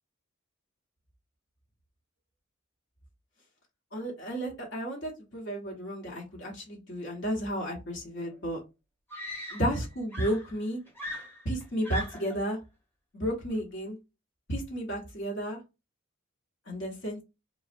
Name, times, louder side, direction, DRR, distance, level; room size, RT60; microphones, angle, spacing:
voice 1, 3.9-8.6 9.5-10.8 11.4-12.6 13.1-14.0 14.5-15.6 16.7-17.2, equal, 60° left, -1 dB, 1.0 m, -32 dB
Screaming, 8.3-8.4 9.1-9.9 10.1-12.4 13.4-13.7, left 1 dB, 10° left, 0.9 m, -40 dB
3.9 x 2.0 x 2.5 m, 0.26 s
head